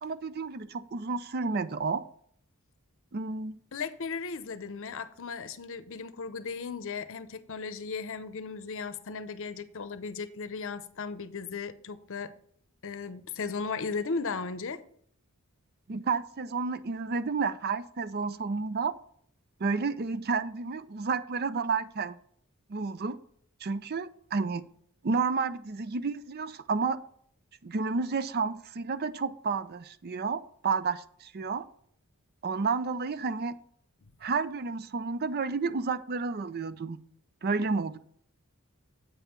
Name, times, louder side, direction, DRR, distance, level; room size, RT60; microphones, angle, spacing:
voice 1, 0.0-2.1 3.1-3.6 15.9-18.9 19.6-22.2 22.7-23.2 23.6-24.6 25.0-27.0 27.6-31.7 32.4-33.6 34.2-37.0 37.4-38.0, right 4 dB, 45° right, 14 dB, 0.5 m, -31 dB
voice 2, 3.7-12.3 12.8-14.8, left 4 dB, 60° left, 13 dB, 0.7 m, -36 dB
8.3 x 5.5 x 5.8 m, 0.63 s
head